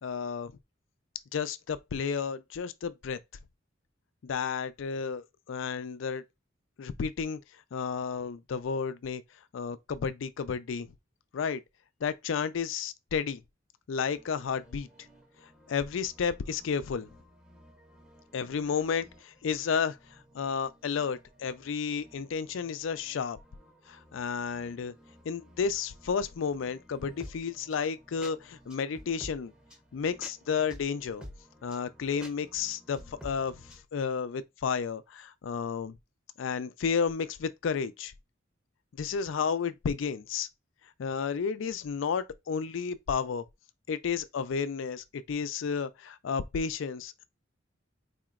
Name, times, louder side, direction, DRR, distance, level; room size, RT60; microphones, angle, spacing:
voice 1, 0.0-0.5 1.3-3.2 4.2-6.2 6.8-7.4 7.7-9.2 9.5-10.9 11.3-11.6 12.0-13.4 13.9-14.9 15.7-17.1 18.3-20.0 20.3-23.4 23.9-24.9 25.3-29.5 29.9-31.2 31.6-33.6 33.9-36.0 36.4-38.1 39.0-40.5 41.0-43.4 43.9-47.2, left 6 dB, 75° left, 0.4 m, -32 dB
sound 1, 14.1-33.8, equal, 5° right, 0.7 m, -53 dB
4.2 x 2.9 x 2.4 m
head